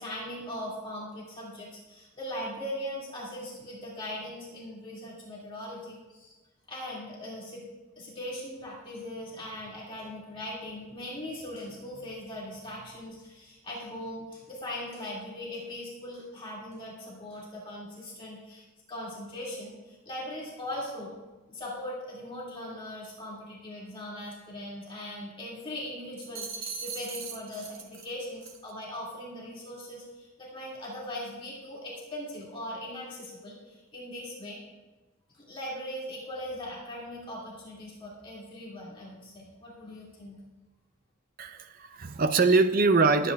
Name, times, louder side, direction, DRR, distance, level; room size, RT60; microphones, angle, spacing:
voice 1, 0.0-6.3 6.7-7.6 8.0-21.1 21.5-34.6 35.3-40.4, left 1 dB, 25° left, -5 dB, 2.3 m, -40 dB
sound 1, 26.2-28.1 28.4-28.7, right 6 dB, 70° right, 1.4 m, -39 dB
voice 2, 41.4-43.3, right 3 dB, 40° right, 10 dB, 0.5 m, -23 dB
24.5 x 8.7 x 2.3 m, 1.2 s
head